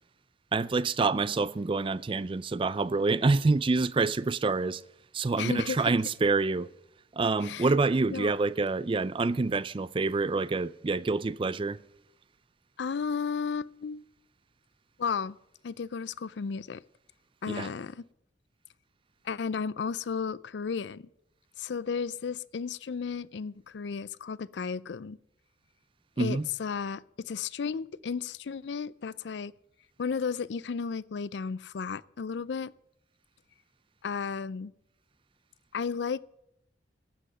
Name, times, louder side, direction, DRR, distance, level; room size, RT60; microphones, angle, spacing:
voice 1, 0.5-4.8 5.1-6.7 7.1-11.8 17.5-17.7 26.2-26.5, right 3 dB, 30° right, 0.4 m, -27 dB
voice 2, 5.4-5.9 7.4-7.7 8.1-8.3 12.8-14.0 15.0-15.4 15.6-16.8 17.4-18.0 19.2-21.1 21.6-25.2 26.2-29.5 30.0-32.7 34.0-34.7 35.7-36.2, left 5 dB, 70° left, 0.4 m, -33 dB
12.5 x 7.8 x 9.3 m
head